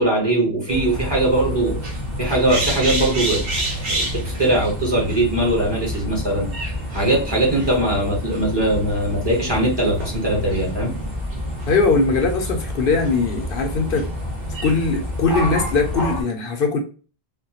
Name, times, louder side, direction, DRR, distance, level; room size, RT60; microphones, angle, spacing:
voice 1, 0.0-1.8 2.2-3.4 3.9-6.5 6.9-10.9, right 1 dB, 25° right, -3 dB, 1.1 m, -20 dB
sound 1, 0.7-16.2, equal, 65° right, 1.1 m, -28 dB
voice 2, 11.7-14.1 14.6-16.8, left 4 dB, 70° left, 3 dB, 0.7 m, -20 dB
3.5 x 2.2 x 2.7 m, 0.36 s
omnidirectional pair, 1.0 m